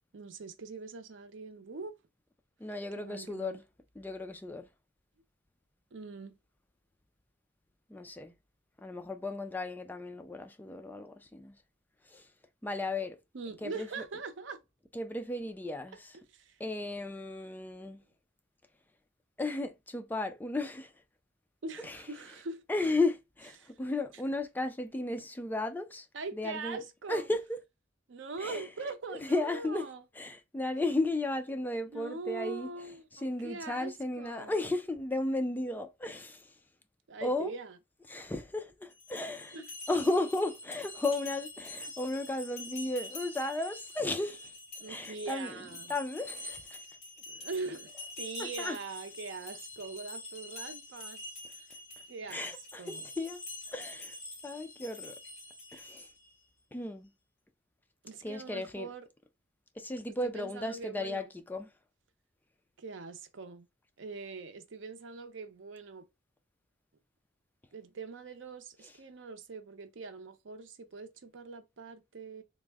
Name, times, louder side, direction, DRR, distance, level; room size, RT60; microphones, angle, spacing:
voice 1, 0.1-2.0 2.9-3.6 5.9-6.4 13.3-14.6 16.1-16.6 21.6-22.6 23.6-23.9 26.1-27.3 28.1-30.0 31.9-34.6 37.1-37.8 39.5-39.7 44.8-45.9 47.3-51.2 52.1-53.0 58.0-59.1 60.2-61.3 62.8-63.7 64.0-66.1 67.7-72.4, right 4 dB, 80° right, 0.6 m, -42 dB
voice 2, 2.6-3.6 4.0-4.7 7.9-8.3 8.8-11.5 12.1-12.2 12.6-13.2 13.6-13.9 14.9-16.0 16.6-18.0 19.4-20.9 21.8-22.0 22.7-26.1 26.4-26.8 27.1-27.6 28.4-28.6 29.1-29.9 30.2-32.7 33.2-36.4 37.2-37.5 38.1-39.6 39.9-44.5 44.9-45.6 45.9-46.8 48.4-48.8 52.3-53.4 53.7-54.1 54.4-55.1 55.7-56.1 56.7-57.1 58.2-58.9 59.8-61.7, left 2 dB, 10° left, 0.3 m, -34 dB
sound 1, 38.9-56.3, left 2 dB, 35° left, 1.6 m, -46 dB
3.5 x 2.1 x 3.3 m
head